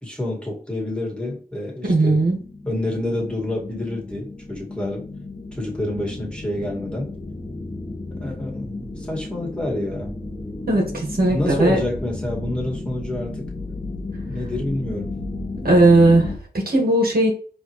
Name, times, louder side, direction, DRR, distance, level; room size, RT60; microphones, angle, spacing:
voice 1, 0.0-2.2 2.7-5.1 5.5-7.2 8.2-10.1 11.3-13.5 14.3-15.1, left 1 dB, 5° left, 2.0 m, -28 dB
voice 2, 1.9-2.4 10.7-11.8 15.6-17.3, right 2 dB, 65° right, 1.6 m, -17 dB
sound 1, 2.2-16.4, left 2 dB, 40° left, 1.4 m, -33 dB
4.6 x 3.1 x 3.1 m
cardioid pair, 40°, 16 cm